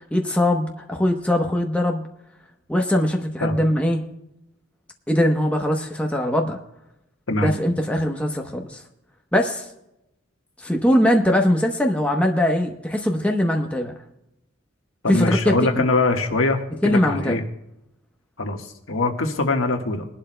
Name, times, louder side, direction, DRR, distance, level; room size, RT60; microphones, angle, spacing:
voice 1, 0.1-2.1 2.7-4.0 5.1-6.6 7.4-8.8 9.3-9.7 10.6-13.9 15.1-15.8 16.8-17.4, left 1 dB, 5° left, 1 dB, 0.9 m, -21 dB
voice 2, 15.0-17.4 18.4-20.0, left 2 dB, 75° left, 4 dB, 1.4 m, -23 dB
21.0 x 11.5 x 2.2 m, 0.87 s
head